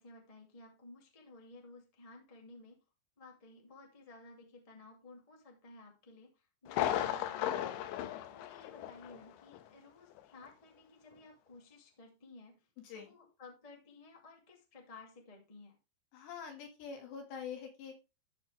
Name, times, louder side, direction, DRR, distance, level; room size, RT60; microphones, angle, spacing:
voice 1, 0.0-2.8 3.2-12.7 12.9-15.8, left 3 dB, 35° left, 0 dB, 0.5 m, -56 dB
Thunder, 6.7-9.3 9.5-9.6 10.2-10.3, left 12 dB, 85° left, 3.1 m, -35 dB
voice 2, 16.1-18.0, left 6 dB, 70° left, 4 dB, 3.9 m, -45 dB
13.5 x 5.4 x 3.3 m, 0.28 s
omnidirectional pair, 5.4 m